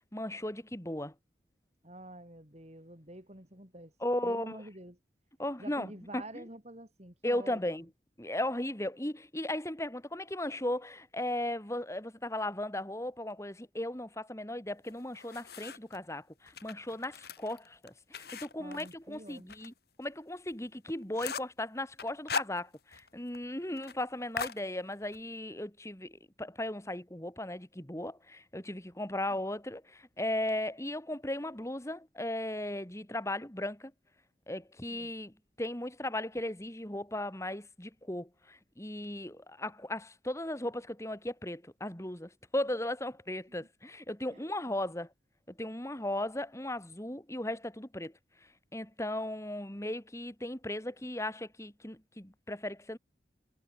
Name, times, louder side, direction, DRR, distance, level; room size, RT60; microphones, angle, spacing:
voice 1, 0.1-1.1 4.0-4.6 5.4-6.2 7.2-7.8 8.2-33.9 34.5-45.1 45.5-48.1 48.7-53.0, left 1 dB, 15° left, 2.7 m, -36 dB
voice 2, 1.8-4.0 4.2-5.0 5.6-7.8 18.6-19.5 34.9-35.1 43.5-43.7 44.3-44.7, right 1 dB, 40° right, 5.4 m, -48 dB
sound 1, 14.8-16.0 16.5-19.7 20.0-20.1 20.5-20.6 20.9-21.6 22.0-23.1 23.3-23.4 23.7-24.0 24.4-25.2, left 5 dB, 60° left, 7.6 m, -39 dB
head